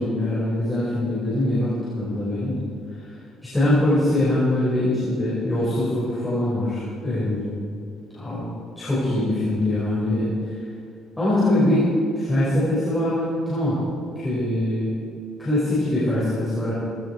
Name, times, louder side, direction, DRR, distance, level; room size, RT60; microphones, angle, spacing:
voice 1, 0.0-2.6 2.9-3.0 3.4-7.5 8.1-8.5 8.8-10.3 11.2-11.9 12.2-13.8 14.2-14.9 15.4-16.7, left 1 dB, 10° left, -9 dB, 5.2 m, -23 dB
18.5 x 16.5 x 4.7 m, 2.5 s
cardioid pair, 135°, 0 cm